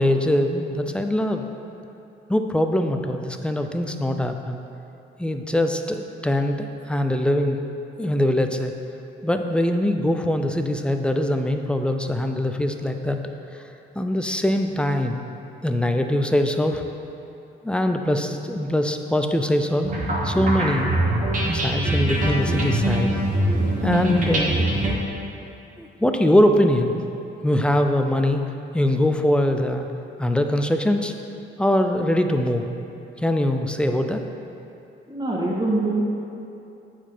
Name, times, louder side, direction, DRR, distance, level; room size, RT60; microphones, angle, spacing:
voice 1, 0.0-1.5 2.3-4.6 5.2-7.6 8.0-8.7 9.2-13.2 13.5-13.6 14.0-15.2 15.6-16.8 17.6-19.9 20.2-21.1 21.5-23.1 23.8-24.5 25.8-26.9 27.4-28.4 28.7-29.9 30.2-31.1 31.6-32.7 33.2-34.2, left 1 dB, 5° left, 5 dB, 0.5 m, -22 dB
sound 1, 19.8-24.9, right 1 dB, 40° right, 1.5 m, -23 dB
voice 2, 35.1-36.0, right 2 dB, 20° right, -4 dB, 1.8 m, -24 dB
8.8 x 4.8 x 4.4 m, 2.7 s
cardioid pair, 90°, 20 cm